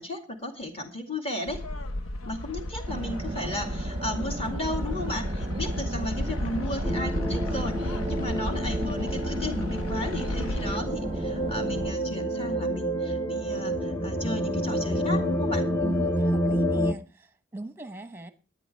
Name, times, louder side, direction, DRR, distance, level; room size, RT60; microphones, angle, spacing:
voice 1, 0.0-1.6 2.3-15.6, left 1 dB, 25° left, 2.2 m, -34 dB
sound 1, 1.5-10.8, left 1 dB, 80° left, 0.9 m, -33 dB
sound 2, 2.9-11.9, right 2 dB, 25° right, 0.6 m, -36 dB
sound 3, 6.8-16.9, equal, 10° left, 0.7 m, -29 dB
voice 2, 15.8-18.3, right 2 dB, 10° right, 1.0 m, -40 dB
18.0 x 10.5 x 3.3 m
head